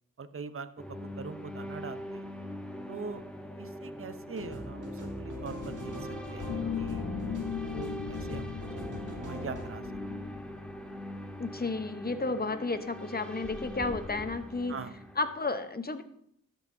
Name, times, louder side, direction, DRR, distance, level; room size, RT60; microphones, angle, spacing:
voice 1, 0.2-2.3 2.9-3.2 3.5-9.9 10.2-10.3 14.7-14.9, right 5 dB, 40° right, 13 dB, 0.7 m, -43 dB
sound 1, 0.8-15.5, equal, 5° left, 1.1 m, -42 dB
sound 2, 4.3-9.7, equal, 55° right, 1.9 m, -42 dB
sound 3, 5.3-11.3, left 7 dB, 55° left, 0.6 m, -39 dB
voice 2, 11.4-14.8 15.2-16.0, left 3 dB, 25° left, 9 dB, 0.9 m, -32 dB
13.0 x 5.7 x 2.7 m, 0.70 s
cardioid pair, 40°, 36 cm